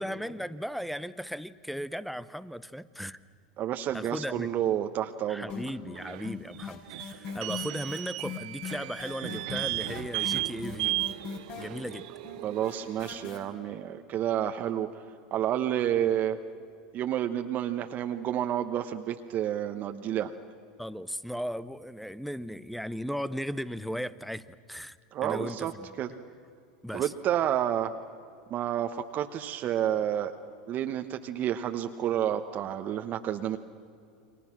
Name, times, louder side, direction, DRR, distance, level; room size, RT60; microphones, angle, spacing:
voice 1, 0.0-3.2 3.9-4.5 5.3-11.1 11.6-12.1 20.8-25.9 26.8-27.1, equal, ahead, 17 dB, 0.8 m, -36 dB
voice 2, 3.6-5.5 12.4-15.0 15.3-16.4 16.9-20.3 25.1-25.7 26.0-26.1 26.9-27.9 28.5-30.3 30.7-33.6, right 10 dB, 40° right, 6 dB, 1.1 m, -30 dB
sound 1, 5.5-6.0 6.2-13.4, left 7 dB, 50° left, 5.8 m, -39 dB
sound 2, 5.9-13.2, right 19 dB, 65° right, 0.5 m, -35 dB
30.0 x 24.0 x 6.1 m, 2.4 s
hypercardioid pair, 95°, 4 cm